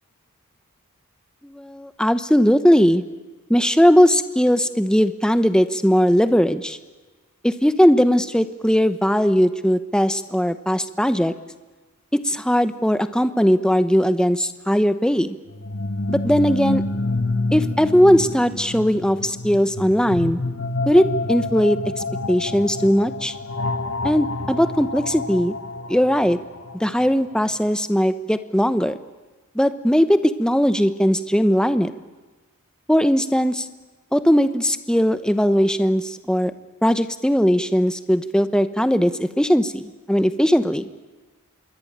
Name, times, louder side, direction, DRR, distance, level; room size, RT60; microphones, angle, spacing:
voice 1, 1.4-3.0 3.5-6.8 7.4-11.3 12.2-15.4 16.1-16.8 17.5-20.4 20.9-21.8 22.3-23.3 24.0-25.5 25.9-26.4 26.7-29.0 29.5-31.9 32.9-33.7 34.1-36.5 36.8-40.8, equal, 5° left, 11 dB, 0.9 m, -19 dB
sound 1, 15.5-27.3, left 2 dB, 60° left, 1.4 m, -28 dB
26.5 x 22.5 x 8.8 m, 1.2 s
head